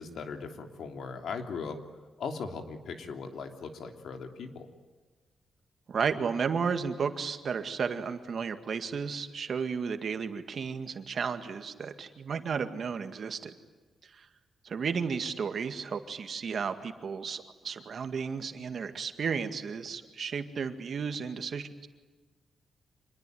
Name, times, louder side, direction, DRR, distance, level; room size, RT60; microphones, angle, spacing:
voice 1, 0.0-1.8 2.2-4.7, left 5 dB, 70° left, 5 dB, 3.1 m, -39 dB
voice 2, 5.9-13.5 14.1-14.3 14.6-21.9, right 6 dB, 45° right, 8 dB, 1.9 m, -33 dB
26.5 x 21.5 x 9.3 m, 1.3 s
wide cardioid pair, 175°, 0 cm